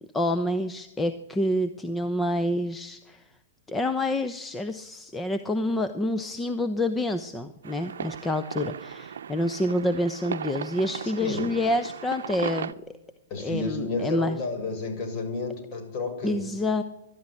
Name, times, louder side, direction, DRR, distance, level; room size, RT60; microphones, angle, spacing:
voice 1, 0.1-3.2 3.7-12.7 13.4-14.4 16.2-16.8, left 1 dB, 10° left, 9 dB, 0.9 m, -27 dB
sound 1, 7.6-12.7, right 8 dB, 80° right, 0.7 m, -36 dB
voice 2, 11.0-11.5 13.3-16.5, left 3 dB, 40° left, 5 dB, 6.8 m, -32 dB
23.0 x 12.0 x 9.9 m, 0.96 s
hypercardioid pair, 130°, 0 cm